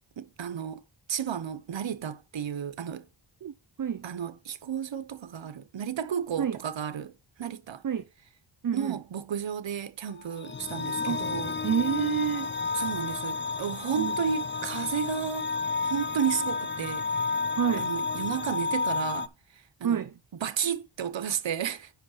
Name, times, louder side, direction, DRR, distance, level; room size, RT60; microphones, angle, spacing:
voice 1, 0.2-0.8 1.1-3.1 4.0-7.1 7.4-7.8 8.7-11.5 12.7-15.5 15.8-17.1 17.8-20.0 20.4-21.9, right 8 dB, 65° right, 0.9 m, -32 dB
voice 2, 3.4-4.1 6.4-6.6 7.8-8.1 8.6-9.0 11.1-11.3 11.6-12.5 14.0-14.1 17.6-17.9 19.8-20.1, right 8 dB, 45° right, 0.6 m, -28 dB
sound 1, 10.2-19.3, left 4 dB, 25° left, 0.5 m, -31 dB
8.3 x 5.6 x 4.0 m
wide cardioid pair, 75°, 48 cm